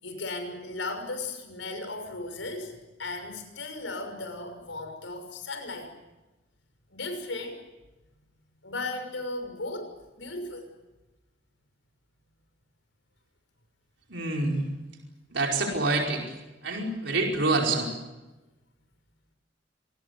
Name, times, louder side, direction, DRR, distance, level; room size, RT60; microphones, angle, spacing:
voice 1, 0.0-5.9 6.9-7.6 8.6-10.7, left 2 dB, 85° left, 7 dB, 6.3 m, -36 dB
voice 2, 14.1-14.7 15.3-16.2 16.6-17.9, right 2 dB, 70° right, 1 dB, 5.1 m, -26 dB
27.0 x 20.5 x 8.3 m, 1.1 s
head